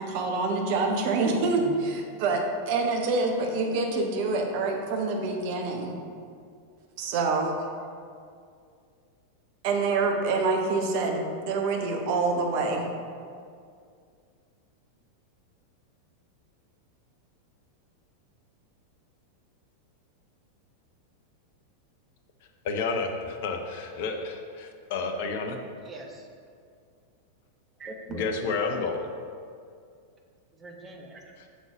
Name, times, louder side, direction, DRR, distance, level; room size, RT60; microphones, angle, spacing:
voice 1, 0.0-5.9 7.0-7.7 9.6-12.9, right 3 dB, 45° right, 2 dB, 0.9 m, -26 dB
voice 2, 22.6-25.6 28.1-29.0, left 4 dB, 50° left, 5 dB, 0.7 m, -30 dB
voice 3, 25.8-26.3 27.8-28.7 30.5-31.3, right 2 dB, 20° right, 1 dB, 0.8 m, -42 dB
6.2 x 3.9 x 4.8 m, 2.3 s
figure-of-eight pair, 90°, 0 cm